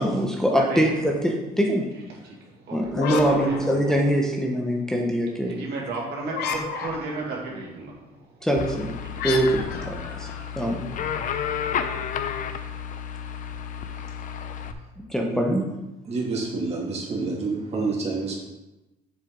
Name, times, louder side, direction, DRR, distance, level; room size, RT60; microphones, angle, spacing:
voice 1, 0.0-1.9 2.7-5.6 8.4-9.0 9.2-10.3 10.6-10.9 15.1-15.6, equal, 5° left, -1 dB, 0.9 m, -23 dB
voice 2, 0.5-1.1 1.9-2.9 3.3-4.0 5.5-8.5 9.0-10.6, right 3 dB, 75° right, -3 dB, 2.3 m, -35 dB
sound 1, 2.9-4.4 6.3-7.4 9.2-11.0, left 5 dB, 75° left, 0.9 m, -31 dB
sound 2, 8.6-14.7, left 8 dB, 50° left, 0.6 m, -31 dB
voice 3, 16.1-18.4, right 3 dB, 40° right, -2 dB, 2.3 m, -28 dB
7.1 x 6.5 x 3.8 m, 1.0 s
cardioid pair, 110°, 17 cm